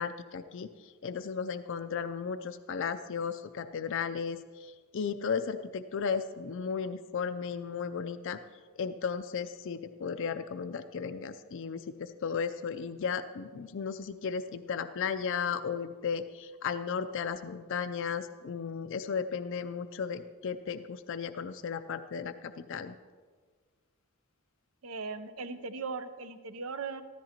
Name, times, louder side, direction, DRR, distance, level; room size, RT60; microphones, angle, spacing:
voice 1, 0.0-8.4 8.8-23.0, left 6 dB, 60° left, 10 dB, 0.4 m, -35 dB
voice 2, 24.8-27.0, right 4 dB, 70° right, 11 dB, 0.7 m, -38 dB
14.5 x 13.5 x 2.9 m, 1.5 s
head